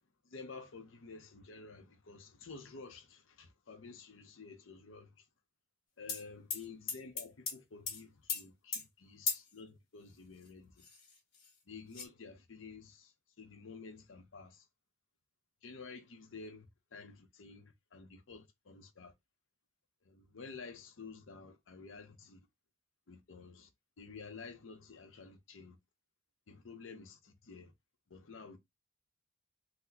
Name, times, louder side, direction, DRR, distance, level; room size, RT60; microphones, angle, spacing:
voice 1, 0.2-5.3 6.0-10.8 11.7-14.7 15.6-16.7 16.9-19.1 20.0-22.5 23.1-23.7 24.0-25.8 26.5-27.7 28.1-28.6, left 4 dB, 90° left, 0.7 m, -51 dB
sound 1, 6.1-6.2 6.5-7.6 7.9-8.0 8.3-8.4 8.7-8.8 9.3-9.5 10.4-10.5 10.8-11.5 11.9-12.0, left 5 dB, 50° left, 1.6 m, -37 dB
4.0 x 2.1 x 2.7 m
head